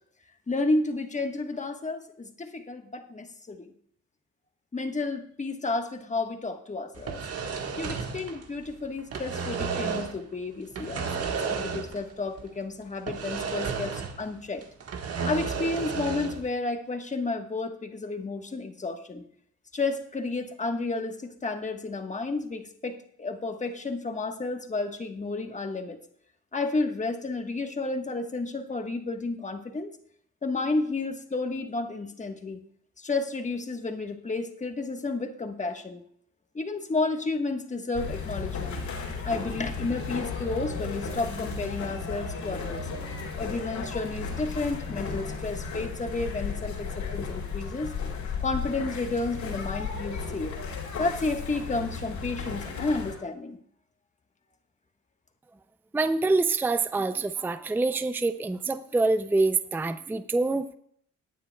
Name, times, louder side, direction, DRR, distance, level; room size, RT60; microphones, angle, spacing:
voice 1, 0.5-3.7 4.7-7.2 7.8-14.6 15.2-19.2 19.7-26.0 26.5-30.0 30.4-32.6 33.0-36.0 36.5-38.8 39.2-42.8 43.4-47.9 48.4-50.5 51.0-53.6, left 3 dB, 25° left, 5 dB, 1.4 m, -31 dB
sound 1, 7.0-8.7 9.0-10.2 10.7-12.1 12.4-12.5 13.1-14.3 14.6-16.5, right 5 dB, 55° right, 1.5 m, -32 dB
sound 2, 37.9-53.1, left 5 dB, 80° left, 4.4 m, -34 dB
voice 2, 55.9-60.7, right 3 dB, 5° right, 10 dB, 0.5 m, -26 dB
18.5 x 9.2 x 2.3 m, 0.65 s
cardioid pair, 90°, 30 cm